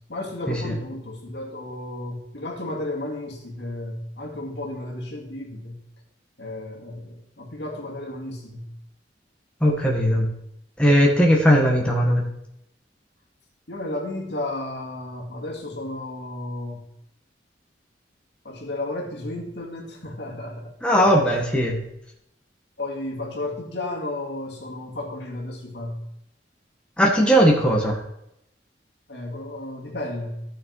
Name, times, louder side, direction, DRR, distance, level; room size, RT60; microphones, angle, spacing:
voice 1, 0.1-5.8 6.4-8.7 13.7-16.9 18.4-20.7 22.8-26.0 29.1-30.4, left 1 dB, 65° left, 0 dB, 2.3 m, -33 dB
voice 2, 9.6-10.3 10.8-12.3 20.8-21.8 27.0-28.0, equal, 5° left, -2 dB, 1.7 m, -18 dB
14.0 x 6.4 x 4.8 m, 0.78 s
head